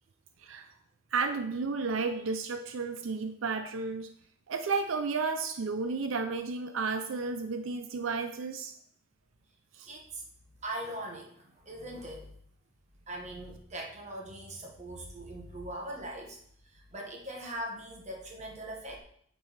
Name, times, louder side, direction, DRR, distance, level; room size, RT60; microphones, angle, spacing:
voice 1, 1.1-4.1 4.5-8.7 9.7-9.9, right 4 dB, 85° right, 8 dB, 0.5 m, -32 dB
voice 2, 9.9-10.2 10.6-12.3 13.1-16.4 16.7-19.0, right 1 dB, 35° right, 0 dB, 1.4 m, -41 dB
8.8 x 4.8 x 4.1 m, 0.64 s
head